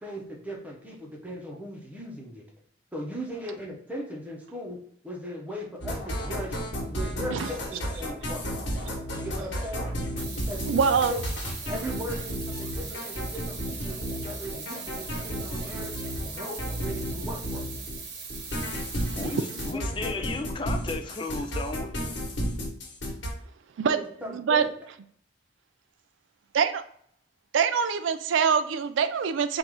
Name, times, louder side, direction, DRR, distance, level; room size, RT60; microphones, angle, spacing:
voice 1, 0.0-2.4 2.9-6.6 6.9-8.5 9.1-9.9 10.3-10.8 11.1-11.2 11.6-15.9 16.3-17.7 19.2-20.3 23.9-24.7, equal, 10° right, -2 dB, 0.9 m, -38 dB
sound 1, 5.8-18.0 18.3-23.3, equal, 70° left, 1.5 m, -32 dB
sound 2, 10.2-19.7, right 5 dB, 60° right, 1.0 m, -40 dB
voice 2, 10.7-11.1 19.0-19.2 23.8-24.0 24.3-24.6 26.5-26.8 27.5-29.6, right 6 dB, 80° right, 10 dB, 0.4 m, -24 dB
voice 3, 19.1-21.9, left 3 dB, 25° left, 5 dB, 0.4 m, -34 dB
4.7 x 2.6 x 3.7 m, 0.63 s
head